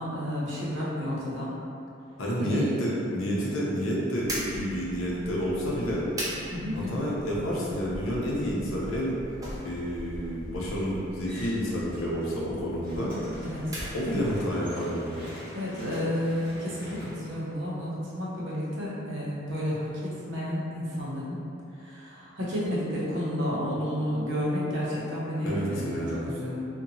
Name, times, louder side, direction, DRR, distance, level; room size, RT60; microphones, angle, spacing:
voice 1, 0.0-1.5 2.4-2.8 6.5-7.0 13.4-13.6 15.5-21.5 21.8-26.6, equal, 65° right, -7 dB, 0.7 m, -31 dB
voice 2, 2.2-6.1 6.7-9.2 9.6-13.2 13.9-15.1 25.4-26.3, equal, 80° left, -5 dB, 0.6 m, -29 dB
sound 1, 4.2-14.6, equal, 15° right, 0.3 m, -40 dB
sound 2, 11.2-12.4 12.7-18.0, equal, 25° left, 0.8 m, -44 dB
2.8 x 2.2 x 2.6 m, 2.7 s
head